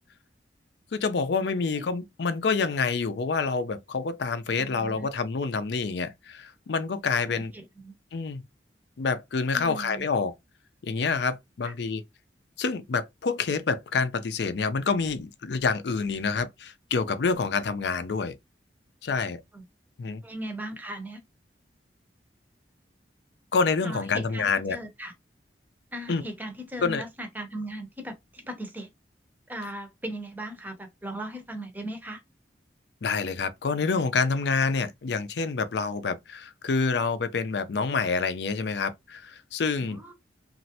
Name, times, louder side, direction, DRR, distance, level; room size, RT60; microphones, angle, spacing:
voice 1, 0.9-7.5 8.1-8.4 9.0-10.3 10.8-12.0 12.6-18.4 19.0-19.4 20.0-20.2 23.5-24.8 26.1-26.2 26.8-27.0 33.0-40.1, left 4 dB, 70° left, 0.5 m, -27 dB
voice 2, 1.5-1.9 4.6-5.1 7.2-7.9 9.5-10.0 11.6-11.7 19.5-19.6 20.2-21.2 23.8-25.1 25.9-28.9 29.5-32.2 39.8-40.1, right 1 dB, 10° right, 0.7 m, -38 dB
3.1 x 2.5 x 2.7 m
head